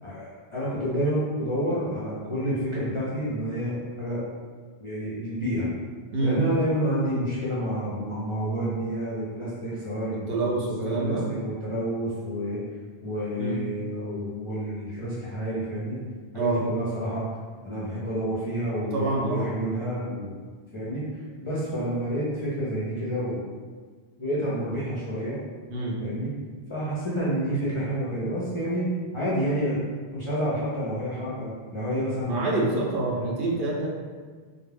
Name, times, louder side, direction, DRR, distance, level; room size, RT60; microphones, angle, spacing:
voice 1, 0.0-4.2 4.8-5.7 6.2-12.6 13.0-16.0 16.3-17.2 17.6-20.3 20.7-21.1 21.4-23.4 24.2-25.4 26.0-26.3 26.7-28.9 29.1-29.8 30.1-32.6 33.0-33.3, equal, 40° left, -9 dB, 0.4 m, -29 dB
voice 2, 10.3-11.3 13.4-13.6 16.3-16.6 18.8-19.5 25.7-25.9 32.2-33.9, right 2 dB, 70° right, -3 dB, 0.7 m, -27 dB
2.3 x 2.1 x 3.2 m, 1.5 s
omnidirectional pair, 1.1 m